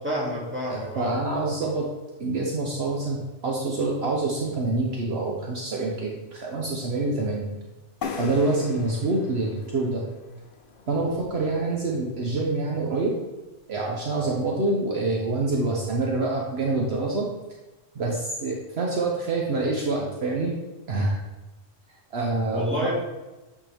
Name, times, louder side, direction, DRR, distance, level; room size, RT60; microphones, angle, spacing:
voice 1, 0.0-1.2 22.5-23.0, equal, 10° right, -5 dB, 2.0 m, -28 dB
voice 2, 0.7-1.9 2.2-7.5 8.1-10.0 10.9-13.1 13.7-17.3 17.9-20.6 20.9-21.2 22.1-22.9, right 3 dB, 60° right, -2 dB, 1.1 m, -26 dB
sound 1, 8.0-11.6, left 5 dB, 55° left, 0.7 m, -38 dB
8.7 x 4.7 x 3.4 m, 1.1 s
omnidirectional pair, 1.3 m